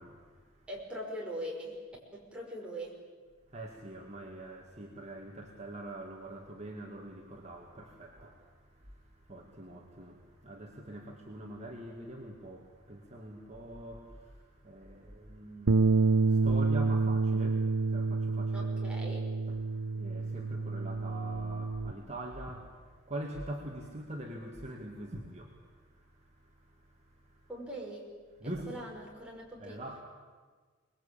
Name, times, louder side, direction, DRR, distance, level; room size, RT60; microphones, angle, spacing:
voice 1, 0.0-0.7 3.5-18.7 19.0-19.1 19.5-27.5 28.4-28.9 29.6-30.0, right 1 dB, 35° right, 0 dB, 2.2 m, -44 dB
voice 2, 0.7-1.8 2.1-2.9 18.5-19.3 27.5-28.1 28.4-29.8, right 1 dB, 5° right, -3 dB, 5.7 m, -41 dB
Bass guitar, 15.7-21.9, right 3 dB, 80° right, 0.7 m, -28 dB
25.0 x 21.0 x 8.7 m, 1.5 s
head